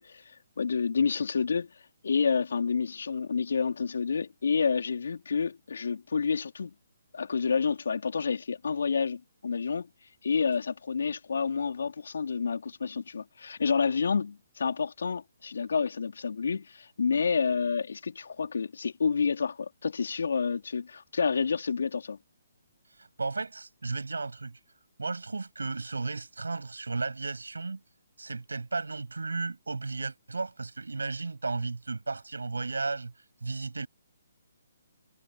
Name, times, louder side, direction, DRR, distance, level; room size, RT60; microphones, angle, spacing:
voice 1, 0.0-6.7 7.1-9.9 10.2-22.2, left 5 dB, 65° left, 3.7 m, -29 dB
voice 2, 23.0-24.6 25.0-27.8 28.2-33.1 33.4-33.9, right 3 dB, 80° right, 7.1 m, -34 dB
figure-of-eight pair, 140°, 0 cm